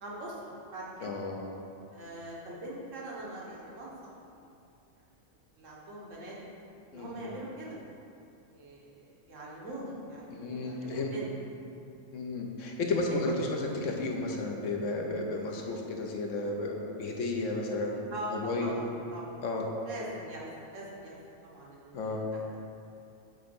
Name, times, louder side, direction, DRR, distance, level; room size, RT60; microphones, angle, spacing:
voice 1, 0.0-1.1 1.9-3.9 4.3-4.4 5.6-6.4 6.9-7.8 8.4-11.3 13.0-13.2 18.1-19.4 19.9-21.2 21.4-22.1, right 1 dB, 85° right, -5 dB, 1.6 m, -42 dB
voice 2, 1.0-1.6 6.9-7.3 10.3-11.1 12.1-18.0 18.3-18.7 19.4-19.7 21.9-22.2, left 2 dB, 90° left, 1 dB, 1.2 m, -33 dB
7.7 x 3.8 x 5.3 m, 2.6 s
omnidirectional pair, 1.3 m